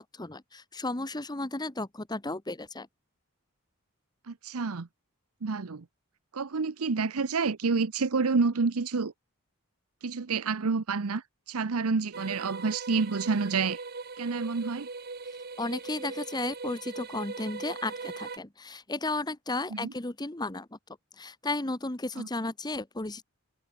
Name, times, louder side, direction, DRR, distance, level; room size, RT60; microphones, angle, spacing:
voice 1, 0.0-2.9 15.6-20.8 21.2-23.2, left 2 dB, 20° left, 1.3 m, -34 dB
voice 2, 4.3-4.9 5.4-5.8 6.3-9.1 10.0-13.8 14.2-14.9 19.8-19.9 22.2-22.3, right 4 dB, 80° right, 0.8 m, -28 dB
sound 1, 12.1-18.4, right 4 dB, 45° right, 1.8 m, -40 dB
head